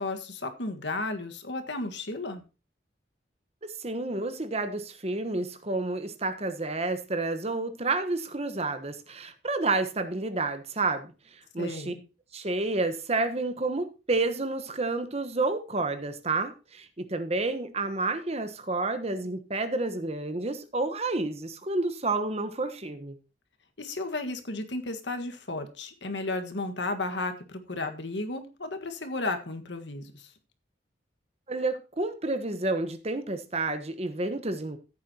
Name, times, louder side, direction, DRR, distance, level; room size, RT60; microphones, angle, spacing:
voice 1, 0.0-2.4 11.6-12.0 23.8-30.3, left 2 dB, 80° left, 7 dB, 1.6 m, -33 dB
voice 2, 3.8-11.1 11.5-11.9 12.3-23.2 31.5-34.8, right 3 dB, 35° right, 9 dB, 1.2 m, -30 dB
14.5 x 8.5 x 2.9 m, 0.31 s
head